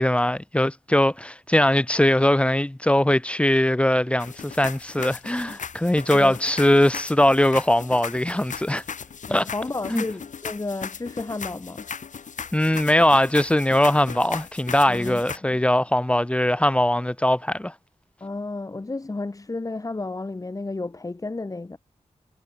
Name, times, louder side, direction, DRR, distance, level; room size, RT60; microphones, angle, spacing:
voice 1, 0.0-8.8 9.3-9.4 9.9-10.0 12.5-17.7, left 1 dB, 10° left, 1.2 m, -21 dB
sound 1, 4.2-15.4, left 6 dB, 80° left, 2.0 m, -37 dB
voice 2, 9.3-11.9 14.9-15.6 18.2-21.8, left 3 dB, 25° left, 3.1 m, -32 dB
wide cardioid pair, 145°, 13 cm